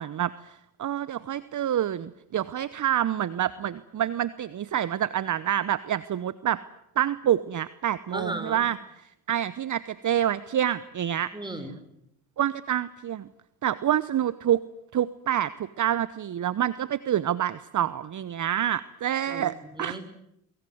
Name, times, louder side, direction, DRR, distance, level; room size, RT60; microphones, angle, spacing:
voice 1, 0.0-6.6 7.0-11.3 12.4-13.3 13.6-14.6 14.9-20.0, right 11 dB, 40° right, 16 dB, 1.0 m, -27 dB
voice 2, 8.1-8.7 11.3-11.8 19.3-19.5 19.8-20.0, right 1 dB, 10° right, 9 dB, 5.5 m, -35 dB
24.5 x 23.0 x 8.0 m, 0.78 s
hypercardioid pair, 60°, 45 cm